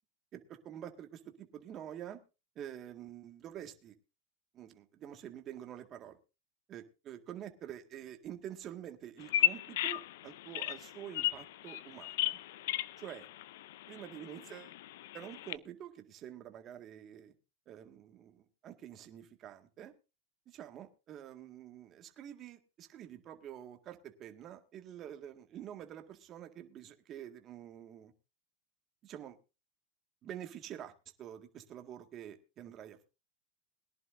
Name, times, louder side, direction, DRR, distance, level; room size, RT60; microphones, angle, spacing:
voice 1, 0.3-2.2 2.6-3.9 4.5-6.2 6.7-12.4 13.0-13.3 13.9-14.8 15.1-17.3 17.7-19.9 20.5-28.1 29.0-29.4 30.2-30.9 31.2-33.1, right 10 dB, 35° right, 6 dB, 1.9 m, -47 dB
Bird vocalization bird call bird song, 9.2-15.6, left 14 dB, 75° left, 0.5 m, -36 dB
21.5 x 11.0 x 2.6 m, 0.29 s
supercardioid pair, 130°, 0 cm